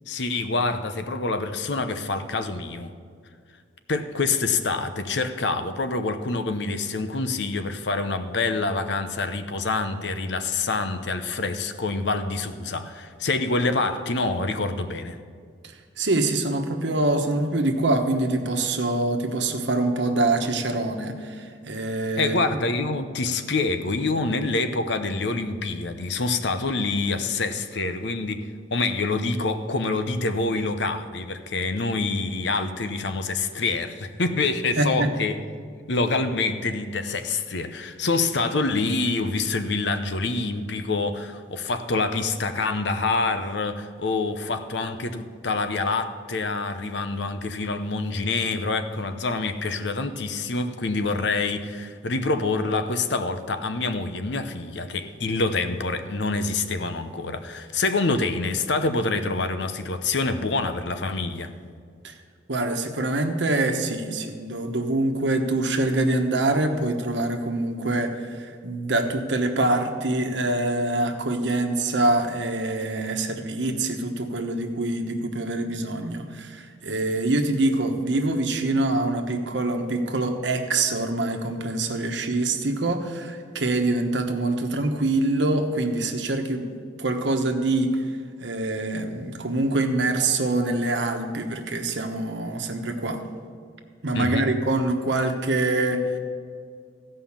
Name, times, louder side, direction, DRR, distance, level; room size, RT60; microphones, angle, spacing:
voice 1, 0.1-2.9 3.9-15.2 22.2-35.4 35.9-61.5 94.1-94.5, left 3 dB, 65° left, 9 dB, 0.7 m, -26 dB
voice 2, 16.0-22.4 34.8-35.1 62.0-62.1 62.5-86.6 87.0-88.1 88.4-93.2 94.0-96.2, right 2 dB, 70° right, 5 dB, 1.1 m, -25 dB
15.0 x 5.5 x 7.2 m, 2.1 s
head